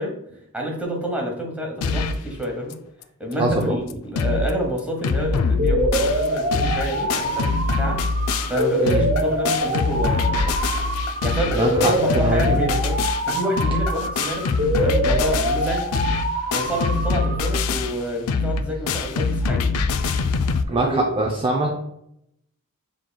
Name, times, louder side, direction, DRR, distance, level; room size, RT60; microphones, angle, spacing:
voice 1, 0.0-2.8 3.2-8.0 8.5-10.5 11.2-13.0 13.3-15.8 16.5-19.6 20.7-21.1, equal, 5° right, 0 dB, 1.1 m, -28 dB
sound 1, 1.8-2.3 2.7-2.8 3.0-3.1 3.6-3.7 3.9-4.5 4.8-20.6, left 4 dB, 80° left, 0.4 m, -24 dB
voice 2, 3.4-3.8 8.8-9.0 11.5-12.6 20.7-21.7, right 2 dB, 25° right, 0 dB, 0.5 m, -23 dB
sound 2, 5.6-17.6, right 1 dB, 50° right, 0.7 m, -25 dB
7.4 x 3.0 x 2.2 m, 0.77 s
head